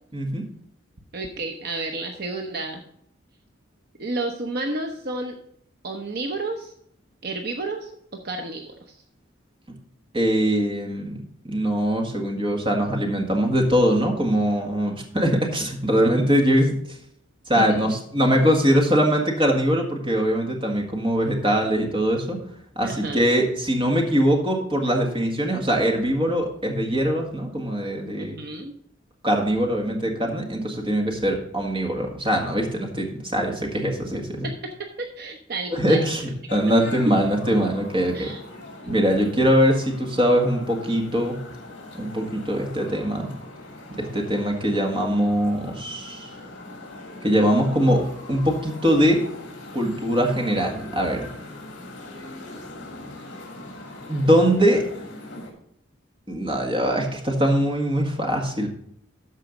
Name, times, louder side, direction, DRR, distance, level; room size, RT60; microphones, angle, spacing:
voice 1, 0.1-0.4 10.1-16.7 17.5-22.4 22.7-28.4 29.2-34.5 35.7-38.3 38.8-41.4 41.9-43.3 43.9-46.3 47.2-49.2 49.7-51.3 54.1-54.8 56.3-58.7, equal, 25° right, 1 dB, 1.7 m, -22 dB
voice 2, 1.1-2.8 4.0-5.3 5.8-6.7 7.2-9.0 17.6-18.0 22.8-23.3 28.2-28.7 34.4-36.0 38.1-38.4, right 2 dB, 50° right, 4 dB, 0.8 m, -31 dB
sound 1, 36.5-55.5, left 2 dB, 60° left, 2.9 m, -41 dB
13.0 x 4.9 x 5.2 m, 0.70 s
head